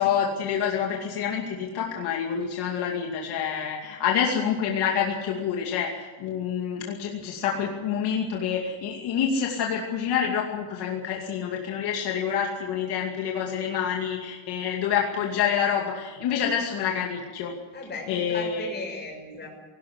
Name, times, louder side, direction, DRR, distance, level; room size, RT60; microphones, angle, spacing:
voice 1, 0.0-17.5 18.1-18.7, left 7 dB, 60° left, 0 dB, 2.6 m, -27 dB
voice 2, 17.7-19.5, left 3 dB, 20° left, 0 dB, 6.6 m, -36 dB
19.0 x 17.0 x 9.7 m, 1.3 s
cardioid pair, 165°, 45 cm